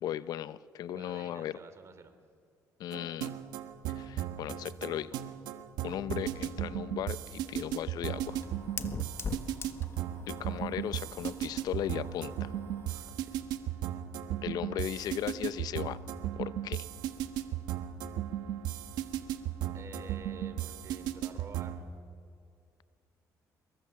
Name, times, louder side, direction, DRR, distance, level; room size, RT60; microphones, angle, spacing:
voice 1, 0.0-1.6 2.8-3.3 3.9-5.2 5.8-8.4 10.3-12.5 14.4-16.0 16.4-16.9, left 11 dB, 70° left, 16 dB, 0.7 m, -37 dB
voice 2, 0.9-2.2 8.9-9.5 12.8-14.0 19.7-21.8, right 5 dB, 45° right, 9 dB, 2.9 m, -51 dB
sound 1, 2.9-21.8, right 11 dB, 85° right, 1.4 m, -36 dB
Fire, 6.8-13.0, left 5 dB, 40° left, 1.4 m, -44 dB
24.5 x 22.5 x 7.5 m, 2.2 s
cardioid pair, 95°, 7 cm